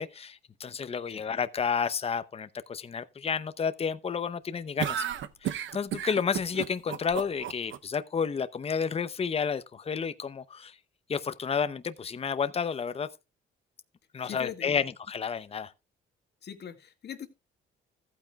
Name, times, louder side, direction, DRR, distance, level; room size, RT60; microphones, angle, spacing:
voice 1, 0.0-5.0 5.4-10.8 11.1-13.1 14.1-15.7, left 6 dB, 30° left, 0.7 m, -31 dB
sound 1, 4.8-7.8, right 10 dB, 70° right, 0.8 m, -33 dB
voice 2, 14.2-14.8 16.4-17.3, left 9 dB, 60° left, 1.9 m, -41 dB
14.5 x 9.0 x 2.3 m
cardioid pair, 90°, 20 cm